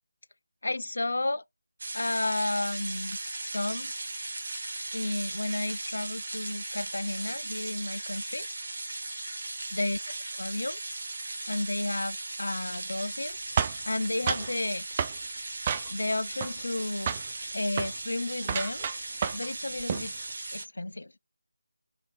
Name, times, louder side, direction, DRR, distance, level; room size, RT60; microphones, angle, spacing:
voice 1, 0.6-1.4 1.9-3.9 4.9-8.5 9.7-10.0 10.3-10.8 11.5-13.4 13.9-15.0 15.9-17.2 17.5-18.9 19.3-20.1 20.5-21.2, left 2 dB, 65° left, 0.4 m, -32 dB
sound 1, 1.8-20.6, right 2 dB, 45° right, 1.2 m, -37 dB
sound 2, 13.6-14.5 15.0-15.2 15.7-16.1 16.4-16.8 17.1-17.3 17.7-18.0 18.4-19.5 19.8-20.1, right 7 dB, 25° right, 0.4 m, -30 dB
3.4 x 2.6 x 3.7 m
figure-of-eight pair, 160°, 0 cm